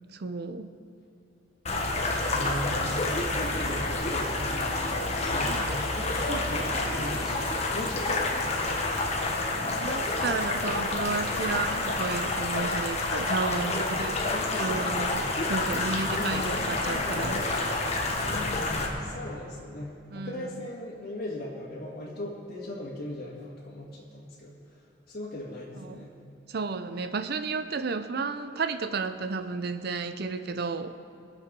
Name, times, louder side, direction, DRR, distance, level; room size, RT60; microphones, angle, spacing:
voice 1, 0.1-0.7 5.4-5.8 9.7-14.3 14.6-17.4 20.1-20.7 25.7-26.1 26.5-30.9, right 4 dB, 60° right, 10 dB, 0.6 m, -32 dB
sound 1, 1.7-18.9, left 2 dB, 35° left, 1.4 m, -29 dB
voice 2, 2.3-5.6 6.0-8.8 13.4-13.7 14.3-15.4 16.1-17.5 18.1-24.5 25.1-26.1, left 1 dB, 55° left, -8 dB, 2.1 m, -38 dB
20.0 x 7.4 x 5.3 m, 2.6 s
head